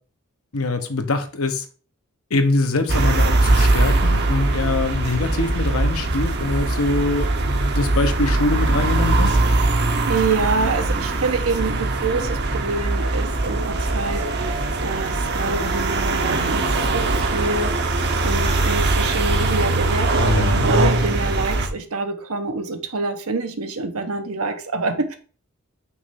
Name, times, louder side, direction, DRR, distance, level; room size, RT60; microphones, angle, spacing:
voice 1, 0.5-1.6 2.3-9.4 20.1-20.7, left 2 dB, 75° left, 1.0 m, -23 dB
sound 1, 2.9-21.7, right 2 dB, 50° right, 0.9 m, -21 dB
voice 2, 10.1-25.2, right 3 dB, 80° right, 0.9 m, -26 dB
5.8 x 3.2 x 5.8 m
head